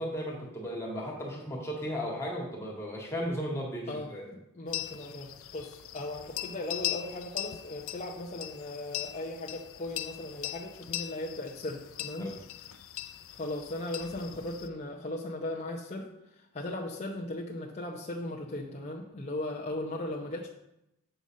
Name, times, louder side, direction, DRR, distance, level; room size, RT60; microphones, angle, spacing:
voice 1, 0.0-4.3 12.2-12.3, equal, 15° left, -3 dB, 1.9 m, -35 dB
voice 2, 3.9-12.3 13.3-16.1 16.3-20.5, left 1 dB, 30° left, -3 dB, 0.7 m, -37 dB
sound 1, 4.7-14.7, left 13 dB, 65° left, 0.5 m, -40 dB
7.8 x 4.0 x 6.2 m, 0.86 s
head